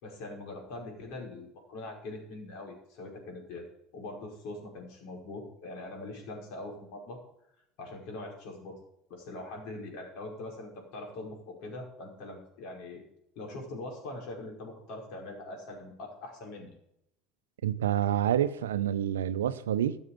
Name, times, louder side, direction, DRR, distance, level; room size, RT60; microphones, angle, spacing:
voice 1, 0.0-3.6 3.9-7.2 7.8-8.8 9.1-13.0 13.4-16.7, left 2 dB, 65° left, 5.2 m, -42 dB
voice 2, 17.6-20.0, right 10 dB, 85° right, 0.7 m, -28 dB
13.5 x 7.2 x 7.6 m
hypercardioid pair, 80°, 0 cm